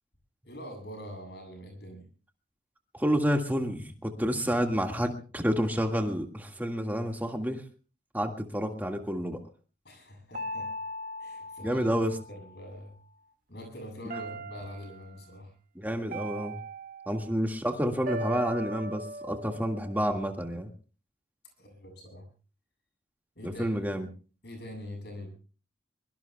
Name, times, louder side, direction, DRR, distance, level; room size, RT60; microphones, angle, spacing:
voice 1, 0.4-2.1 9.8-10.7 11.2-12.9 13.5-15.5 17.3-17.4 21.6-22.3 23.4-23.9 24.4-25.3, left 1 dB, 60° left, 4 dB, 7.9 m, -44 dB
voice 2, 2.9-7.6 8.1-9.4 11.6-12.2 15.8-16.6 17.1-20.7 23.4-24.1, equal, 10° right, 4 dB, 1.8 m, -29 dB
sound 1, 10.3-12.7 14.1-15.1 16.1-17.4 18.1-20.4, right 1 dB, 45° right, 1.7 m, -39 dB
23.5 x 23.5 x 2.3 m, 0.37 s
head